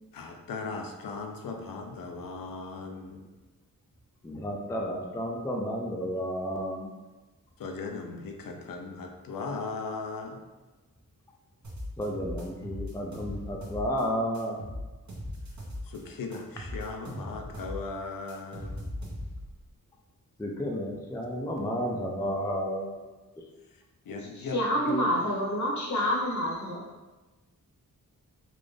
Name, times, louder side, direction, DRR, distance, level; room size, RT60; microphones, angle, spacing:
voice 1, 0.1-3.3 7.6-10.4 15.8-18.9 23.7-24.6 24.8-25.1, left 3 dB, 75° left, 3 dB, 0.5 m, -38 dB
voice 2, 4.2-6.9 12.0-14.6 20.4-23.0, equal, 10° left, 0 dB, 0.4 m, -32 dB
sound 1, 11.6-14.0 14.3-16.0 16.3-19.5, left 1 dB, 55° right, 1.1 m, -38 dB
voice 3, 24.2-26.8, equal, 55° left, -2 dB, 0.9 m, -28 dB
3.9 x 2.5 x 3.2 m, 1.2 s
wide cardioid pair, 120°, 35 cm